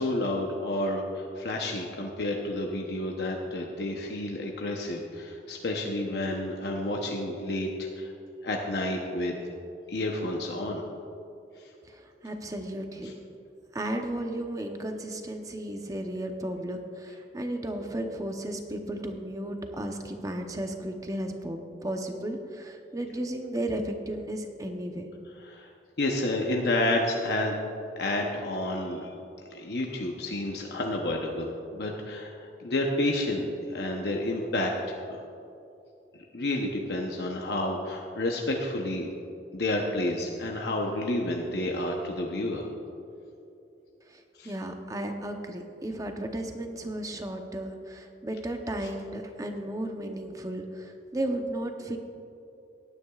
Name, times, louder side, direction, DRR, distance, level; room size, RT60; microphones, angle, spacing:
voice 1, 0.0-8.1 8.4-9.3 9.9-10.8 11.6-11.7 13.0-13.1 25.4-25.7 26.0-27.6 28.0-29.1 29.5-35.1 36.1-39.1 39.5-42.7 44.4-44.5, left 1 dB, 65° left, 0 dB, 0.8 m, -30 dB
voice 2, 11.9-13.1 13.7-25.1 44.4-52.0, right 1 dB, 20° right, 4 dB, 0.8 m, -34 dB
18.0 x 9.7 x 2.4 m, 2.7 s
head